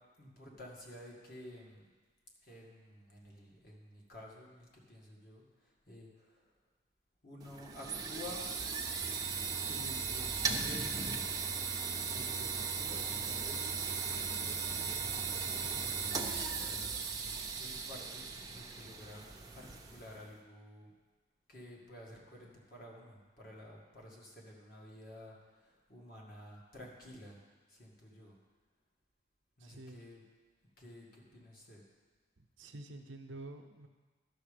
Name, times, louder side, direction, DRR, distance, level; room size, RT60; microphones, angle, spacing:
voice 1, 0.2-1.8 2.4-6.4 7.2-8.5 9.7-11.0 12.1-17.1 17.5-19.2 19.5-20.9 21.5-27.4 27.7-28.4 29.6-30.2 30.8-31.8, left 1 dB, 50° left, -2 dB, 1.9 m, -52 dB
sound 1, 7.4-20.2, right 5 dB, 20° right, 0.6 m, -37 dB
voice 2, 29.6-30.0 32.4-33.9, right 2 dB, 85° right, 5 dB, 0.8 m, -49 dB
12.0 x 6.3 x 5.1 m, 1.3 s
head